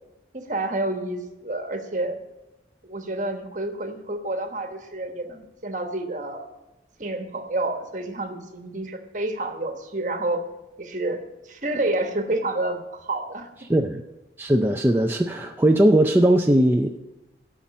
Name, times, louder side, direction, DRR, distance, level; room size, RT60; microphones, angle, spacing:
voice 1, 0.3-2.2 2.8-6.4 7.0-10.4 10.8-11.2 11.4-13.5, right 2 dB, 45° right, 5 dB, 1.2 m, -29 dB
voice 2, 13.7-14.0 14.4-17.0, right 1 dB, 10° right, 2 dB, 0.4 m, -19 dB
12.5 x 5.8 x 8.3 m, 1.0 s
head